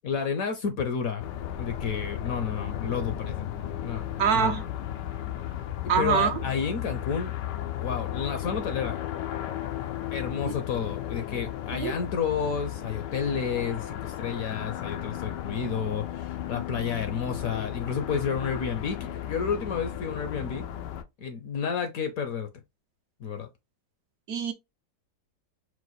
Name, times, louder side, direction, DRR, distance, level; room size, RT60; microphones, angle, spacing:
voice 1, 0.0-1.3 1.6-3.5 3.8-4.1 4.4-4.5 6.0-7.3 7.8-9.0 10.1-20.7 21.2-22.5 23.2-23.5, left 6 dB, 65° left, 1.0 m, -31 dB
sound 1, 1.2-21.0, left 11 dB, 85° left, 1.3 m, -35 dB
voice 2, 4.2-4.6 5.9-6.4 10.4-10.5 11.7-12.0 24.3-24.5, right 7 dB, 65° right, 1.1 m, -25 dB
4.7 x 2.1 x 4.0 m
omnidirectional pair, 1.9 m